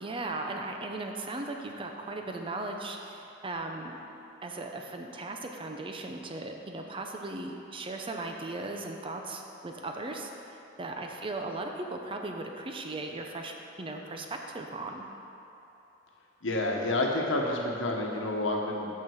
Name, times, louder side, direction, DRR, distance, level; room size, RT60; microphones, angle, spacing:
voice 1, 0.0-4.0 4.4-15.1, right 2 dB, 30° right, 3 dB, 0.6 m, -37 dB
voice 2, 16.4-18.9, left 2 dB, 85° left, 0 dB, 1.1 m, -29 dB
6.3 x 5.7 x 7.1 m, 2.9 s
head